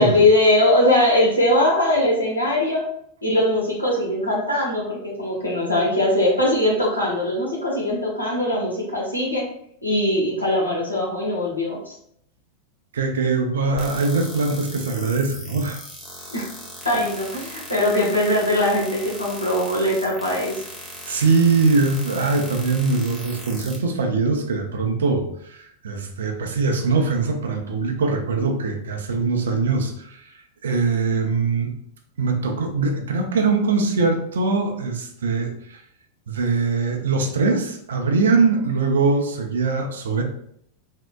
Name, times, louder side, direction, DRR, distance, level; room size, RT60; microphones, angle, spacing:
voice 1, 0.0-2.8 3.2-9.5 9.8-11.9 16.3-16.5 16.8-20.5, left 1 dB, 85° left, -4 dB, 0.9 m, -21 dB
voice 2, 12.9-15.8 21.1-30.2 30.6-31.7 32.2-35.8 36.3-40.2, right 4 dB, 65° right, 3 dB, 0.4 m, -22 dB
sound 1, 13.8-23.8, equal, 10° left, 0.8 m, -38 dB
3.5 x 2.1 x 2.2 m, 0.69 s
figure-of-eight pair, 90°, 0 cm